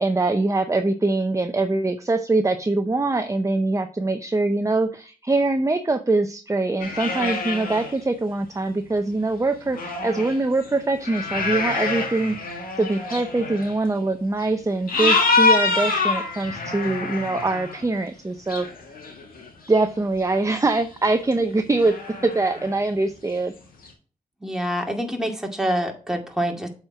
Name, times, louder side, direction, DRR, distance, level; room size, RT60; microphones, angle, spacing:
voice 1, 0.0-18.7 19.7-22.0 22.2-23.5, right 2 dB, 20° right, 7 dB, 0.7 m, -23 dB
sound 1, 6.8-7.9 8.6-8.7 9.6-13.7 14.4-14.5 14.9-17.8 18.5-19.9 20.3-20.4 20.7-20.8 21.3-21.4 21.7-22.8 23.8-23.9, left 3 dB, 85° left, 1.9 m, -25 dB
voice 2, 24.4-26.7, equal, 5° right, 2 dB, 2.1 m, -26 dB
7.5 x 4.5 x 4.8 m, 0.39 s
cardioid pair, 50°, 15 cm